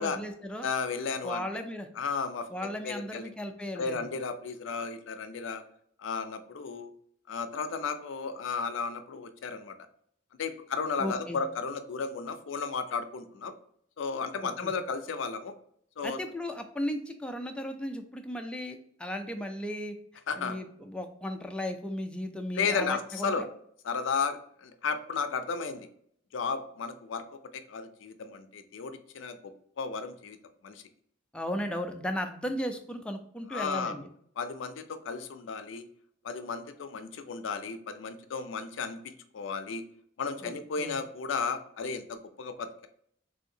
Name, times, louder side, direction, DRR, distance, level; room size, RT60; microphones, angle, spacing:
voice 1, 0.0-0.7 1.2-1.9 2.5-4.1 11.0-11.4 14.4-14.7 16.0-19.9 20.4-23.5 31.3-34.1 40.4-41.0, left 1 dB, 5° left, 4 dB, 0.3 m, -36 dB
voice 2, 0.6-1.4 2.0-3.3 3.8-5.6 6.0-6.9 7.3-9.7 10.4-13.5 14.0-15.5 16.0-16.2 20.3-20.6 22.6-23.4 23.8-25.9 26.3-27.2 27.5-30.4 30.6-30.8 33.5-33.9 34.4-35.9 36.2-39.8 40.2-42.9, left 5 dB, 70° left, 9 dB, 0.4 m, -34 dB
3.4 x 2.7 x 2.6 m, 0.67 s
head